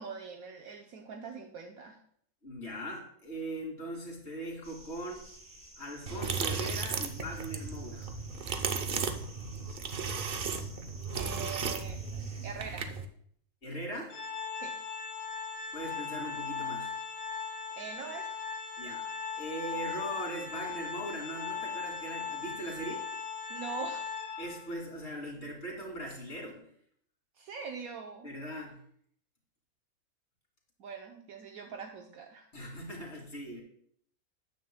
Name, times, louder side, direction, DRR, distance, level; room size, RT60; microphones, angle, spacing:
voice 1, 0.0-2.0 11.1-12.8 14.6-14.8 17.8-18.4 23.5-24.1 27.4-28.3 30.8-32.5, right 6 dB, 70° right, 3 dB, 1.2 m, -43 dB
voice 2, 2.4-5.2 5.8-8.1 13.6-14.1 15.7-16.9 18.8-19.1 19.3-23.0 24.4-26.7 28.2-28.8 32.5-33.6, right 1 dB, 45° left, -1 dB, 2.9 m, -40 dB
sound 1, 4.6-12.5, right 1 dB, 10° right, 3.6 m, -53 dB
sound 2, 6.1-13.0, right 5 dB, 50° right, 0.8 m, -35 dB
Organ, 14.1-24.8, left 5 dB, 75° left, 1.5 m, -38 dB
13.5 x 9.5 x 2.2 m, 0.65 s
omnidirectional pair, 1.6 m